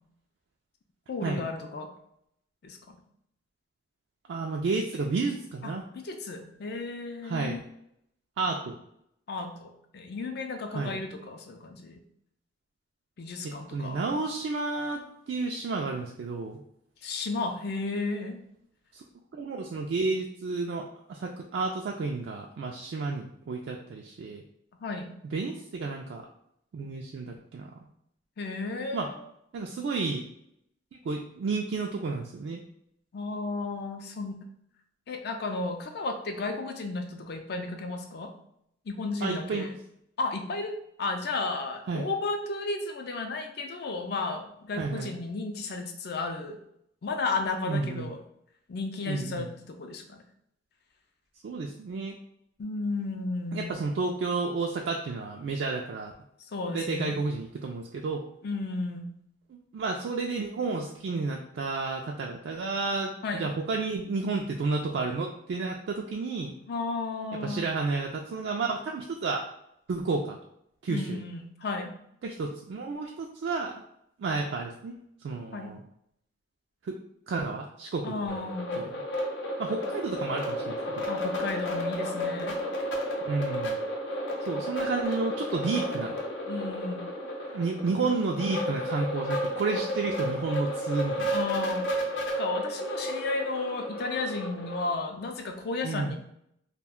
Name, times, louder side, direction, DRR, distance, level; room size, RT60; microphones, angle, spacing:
voice 1, 1.1-1.9 2.6-3.0 5.6-7.6 9.3-12.0 13.2-14.2 17.0-18.4 24.8-25.2 28.4-29.2 33.1-34.4 35.1-38.3 38.9-39.8 40.2-46.6 47.0-48.2 48.7-50.2 52.6-53.8 56.5-57.2 58.4-59.1 63.2-63.5 66.7-67.7 70.9-72.0 75.5-75.7 78.0-78.8 81.0-82.6 86.5-87.1 87.9-88.0 91.3-91.8 92.4-96.2, left 3 dB, 60° left, 5 dB, 0.4 m, -33 dB
voice 2, 4.3-5.8 7.2-7.6 8.4-8.8 10.7-11.0 13.7-15.0 15.3-16.6 18.9-19.0 19.3-24.4 25.3-26.3 26.7-27.7 28.9-29.1 29.5-30.3 31.0-32.6 39.2-39.7 41.9-42.0 44.8-45.1 47.6-48.1 49.1-49.5 51.4-52.1 53.5-56.1 56.7-58.2 59.5-66.5 67.4-69.5 69.9-70.4 70.8-71.2 72.2-73.8 74.2-75.0 75.2-75.8 76.8-77.0 77.3-78.5 78.9-79.0 79.6-81.1 83.2-83.8 84.4-86.2 87.5-91.3 95.8-96.2, right 3 dB, 75° right, 1 dB, 0.3 m, -31 dB
sound 1, 78.3-95.0, equal, 90° left, 0.7 m, -32 dB
2.4 x 2.2 x 3.5 m, 0.74 s
head